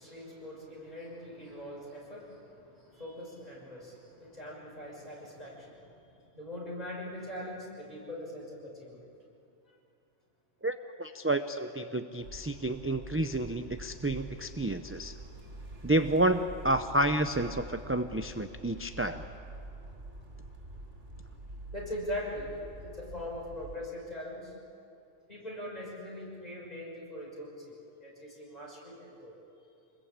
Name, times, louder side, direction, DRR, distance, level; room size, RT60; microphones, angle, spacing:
voice 1, 0.0-9.0 9.7-9.8 15.7-15.8 21.7-24.5 25.3-29.3, left 1 dB, 35° left, -3 dB, 6.3 m, -42 dB
voice 2, 10.6-15.2 15.8-19.2, right 1 dB, 15° right, 8 dB, 0.4 m, -30 dB
sound 1, 12.2-23.7, right 1 dB, 75° right, 3.0 m, -46 dB
26.0 x 21.0 x 8.7 m, 2.7 s
omnidirectional pair, 1.3 m